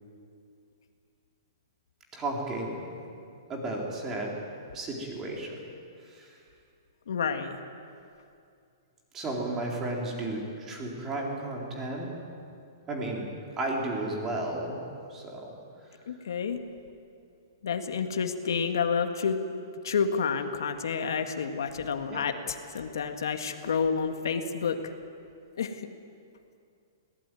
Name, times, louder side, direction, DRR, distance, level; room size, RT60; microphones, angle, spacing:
voice 1, 2.1-3.1 3.5-4.4 4.7-5.5 6.0-6.4 9.1-12.1 12.9-13.3 13.6-14.8 15.1-15.5 22.1-22.2, right 2 dB, 15° right, -1 dB, 3.9 m, -33 dB
voice 2, 7.1-7.6 16.1-16.6 17.6-19.4 19.8-24.8 25.6-25.9, left 6 dB, 75° left, 6 dB, 2.1 m, -29 dB
23.5 x 18.5 x 9.3 m, 2.4 s
hypercardioid pair, 170°, 2 cm